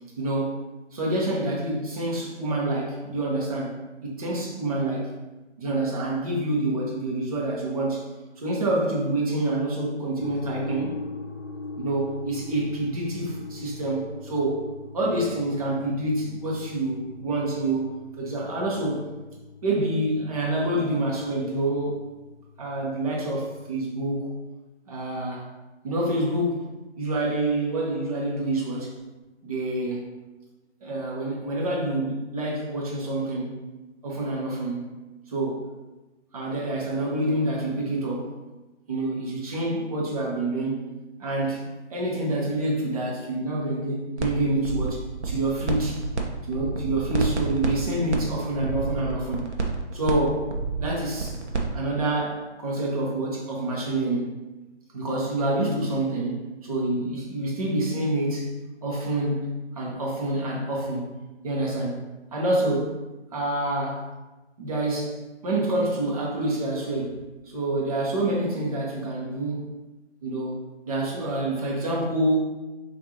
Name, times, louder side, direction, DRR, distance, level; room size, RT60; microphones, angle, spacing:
voice 1, 0.2-0.6 0.9-5.1 5.6-8.0 8.4-10.9 11.8-14.7 14.9-19.1 19.6-22.1 22.6-24.3 24.9-25.5 25.8-29.0 29.4-30.1 30.8-33.6 34.0-34.9 35.3-35.7 36.3-38.4 38.9-40.8 41.2-46.1 46.5-49.5 49.9-50.5 50.8-51.4 51.7-54.4 54.9-58.5 58.8-61.0 61.4-62.0 62.3-63.0 63.3-64.1 64.6-67.2 67.4-69.8 70.2-72.5, right 1 dB, 30° right, -4 dB, 1.0 m, -27 dB
sound 1, 10.2-23.9, left 3 dB, 85° left, 0.7 m, -42 dB
sound 2, 44.2-44.3 44.6-46.2 46.5-51.7, right 4 dB, 70° right, 0.8 m, -29 dB
5.5 x 2.6 x 2.9 m, 1.1 s
figure-of-eight pair, 155°, 35 cm